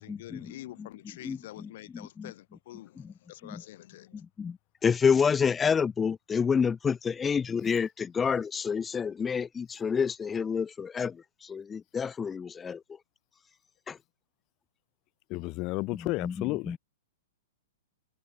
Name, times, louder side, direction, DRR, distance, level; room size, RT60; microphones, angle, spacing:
voice 1, 0.0-4.2, left 15 dB, 55° left, 5.4 m, -47 dB
voice 2, 4.8-11.2 11.4-12.8 13.9-14.0 15.9-16.8, left 6 dB, 15° left, 0.4 m, -28 dB
voice 3, 15.3-16.8, left 23 dB, 40° left, 1.1 m, -32 dB
figure-of-eight pair, 105°, 0 cm